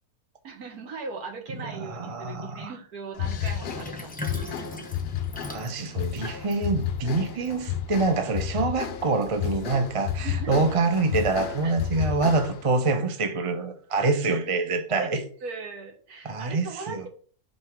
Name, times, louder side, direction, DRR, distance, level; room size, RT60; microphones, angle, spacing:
voice 1, 0.4-4.9 10.2-10.6 11.6-12.0 15.0-17.1, right 4 dB, 70° right, 1.8 m, -39 dB
voice 2, 1.6-2.7 5.5-15.2 16.2-17.1, right 3 dB, 30° right, 0.6 m, -26 dB
sound 1, 3.1-12.7, left 9 dB, 60° left, 0.6 m, -32 dB
Sink (filling or washing), 3.3-8.0, left 2 dB, 10° left, 0.5 m, -41 dB
5.5 x 3.9 x 5.8 m
omnidirectional pair, 1.7 m